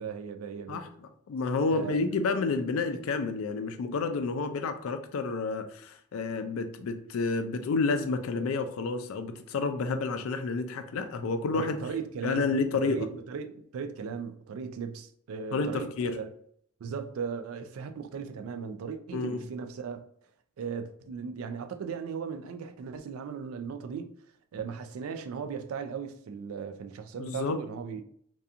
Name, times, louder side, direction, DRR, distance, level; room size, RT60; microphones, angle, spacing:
voice 1, 0.0-0.8 1.7-2.0 11.5-12.6 12.8-16.3 16.8-20.0 20.6-24.2 24.5-28.0, right 6 dB, 90° right, 0.3 m, -37 dB
voice 2, 0.7-11.8 12.2-13.1 15.5-16.2 19.1-19.4 27.2-27.6, left 4 dB, 85° left, 0.4 m, -30 dB
2.7 x 2.3 x 2.4 m
head